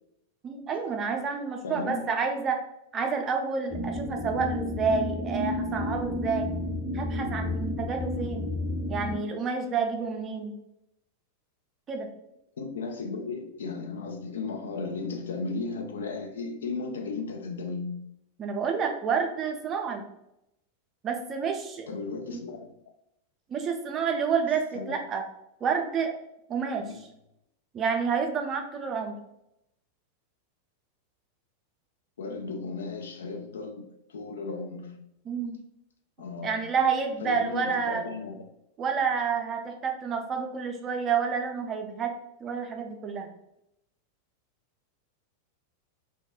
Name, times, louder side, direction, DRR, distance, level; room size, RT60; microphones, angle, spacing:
voice 1, 0.4-2.6 2.9-6.5 6.9-8.5 8.9-10.5 11.9-12.1 18.4-20.0 21.0-21.9 22.3-22.4 23.5-25.2 25.6-26.1 26.5-26.8 27.7-29.2 35.3-35.6 36.4-38.0 38.8-42.1 42.4-43.3, right 6 dB, 25° right, 0.4 m, -29 dB
voice 2, 1.6-2.1 12.6-18.1 21.9-22.7 24.7-25.0 26.9-27.0 32.2-35.1 36.2-36.7 37.2-38.5, left 4 dB, 65° left, 0.3 m, -35 dB
sound 1, 3.7-9.2, left 1 dB, 50° left, 0.9 m, -31 dB
2.2 x 2.2 x 2.9 m
figure-of-eight pair, 90°, 0 cm